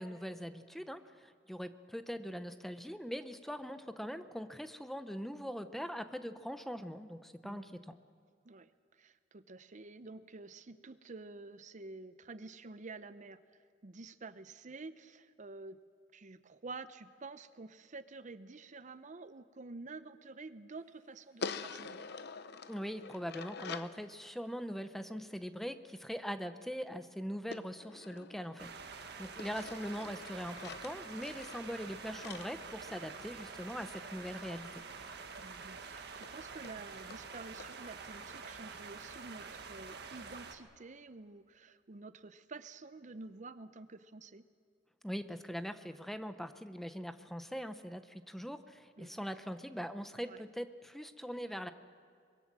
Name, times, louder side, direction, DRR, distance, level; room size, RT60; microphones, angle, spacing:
voice 1, 0.0-7.9 22.7-34.8 45.0-51.7, equal, ahead, 10 dB, 0.8 m, -42 dB
voice 2, 7.4-7.9 8.4-13.6 13.8-15.8 16.1-22.1 35.4-44.5 49.0-49.3 50.3-50.4, right 3 dB, 40° right, 13 dB, 0.7 m, -49 dB
sound 1, 21.4-24.0 27.5-28.9 29.4-33.5 35.4-35.5 35.8-35.9 36.2-36.3 36.6-36.8 37.1-37.2 37.6-37.7, left 5 dB, 60° left, 0.9 m, -46 dB
sound 2, 28.6-40.6, right 5 dB, 60° right, 1.7 m, -47 dB
24.5 x 22.0 x 7.5 m, 2.1 s
head